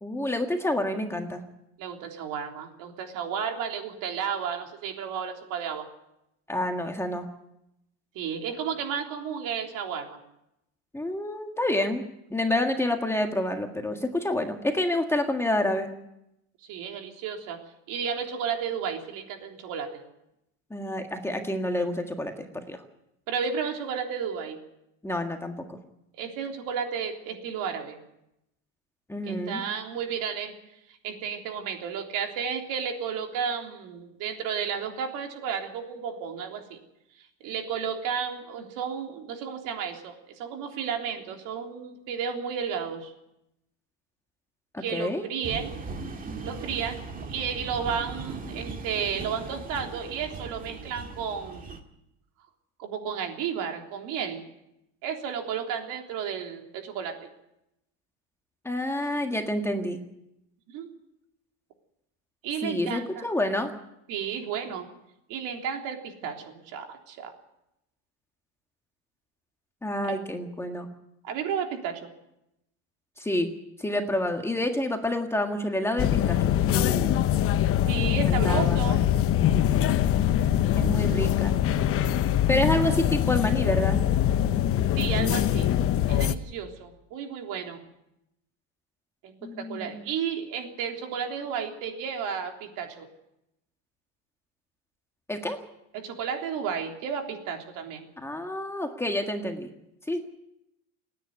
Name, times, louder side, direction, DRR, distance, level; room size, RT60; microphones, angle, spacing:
voice 1, 0.0-1.4 6.5-7.3 10.9-12.0 12.3-15.9 20.7-22.8 25.0-25.8 29.1-29.6 44.7-45.2 58.6-60.0 62.6-63.7 69.8-70.9 73.2-73.5 73.8-76.4 76.7-77.2 78.1-78.9 80.8-81.5 82.5-84.0 89.4-89.9 95.3-95.6 98.2-99.7 100.1-100.2, left 1 dB, 5° left, 4 dB, 1.7 m, -28 dB
voice 2, 1.8-5.9 8.2-10.2 16.7-17.6 17.9-20.0 23.3-24.6 26.2-28.0 29.3-30.5 31.0-36.8 37.4-43.1 44.8-45.7 46.4-47.0 47.3-51.7 52.8-54.4 55.0-57.3 60.7-60.9 62.4-63.2 64.1-64.9 65.3-67.3 71.2-72.1 77.8-79.0 80.6-81.0 85.0-85.7 86.1-87.8 89.2-93.1 95.9-98.1, right 7 dB, 65° right, 3 dB, 3.5 m, -32 dB
sound 1, 45.4-51.8, right 3 dB, 25° right, 2.1 m, -38 dB
sound 2, 76.0-86.4, left 11 dB, 40° left, 0.9 m, -23 dB
28.5 x 10.0 x 9.5 m, 0.84 s
cardioid pair, 135°, 34 cm